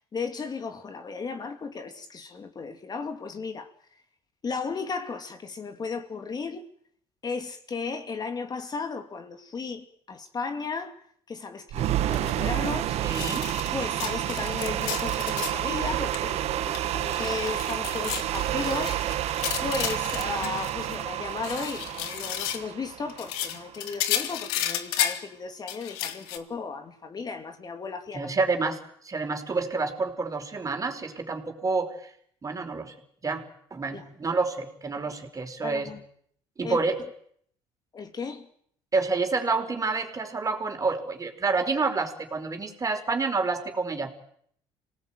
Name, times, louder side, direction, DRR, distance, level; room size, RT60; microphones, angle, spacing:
voice 1, 0.1-3.7 4.4-6.7 7.2-13.0 13.7-19.0 19.6-28.3 33.9-34.0 35.6-36.0 36.6-36.8 37.9-38.5, left 4 dB, 35° left, 2.7 m, -35 dB
sound 1, 11.7-23.9, right 12 dB, 65° right, 1.3 m, -29 dB
sound 2, 12.1-12.3 12.7-12.8 13.1-13.7 14.0-15.6 15.9-16.2 16.5-21.0 21.3-22.7 23.1-25.3 25.7-26.4, left 12 dB, 90° left, 2.0 m, -33 dB
voice 2, 13.0-13.5 28.1-28.8 29.0-32.1 32.4-32.9 33.2-33.4 33.7-35.9 36.6-37.0 38.9-44.1, right 4 dB, 30° right, 4.8 m, -28 dB
26.5 x 18.5 x 9.1 m
supercardioid pair, 85°, 12 cm